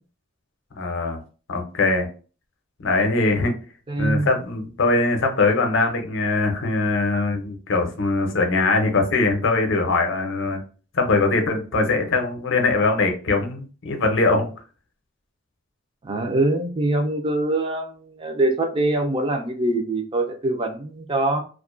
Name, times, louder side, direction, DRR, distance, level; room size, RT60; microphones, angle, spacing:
voice 1, 0.8-1.2 1.5-2.1 2.8-3.5 4.0-10.6 10.9-14.5, left 3 dB, 65° left, 4 dB, 0.6 m, -21 dB
voice 2, 3.9-4.3 16.0-21.4, right 2 dB, 25° right, 5 dB, 0.4 m, -23 dB
2.4 x 2.1 x 2.4 m, 0.37 s
head